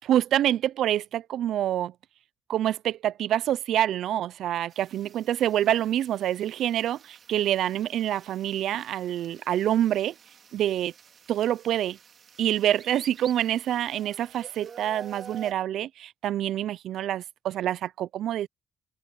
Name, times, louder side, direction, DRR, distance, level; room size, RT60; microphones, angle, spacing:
voice 1, 0.0-1.9 2.5-10.1 10.5-10.9 11.3-12.0 12.4-18.5, right 11 dB, 75° right, 0.4 m, -26 dB
sound 1, 4.7-15.5, right 6 dB, 50° right, 2.5 m, -49 dB
cardioid pair, 90°, 0 cm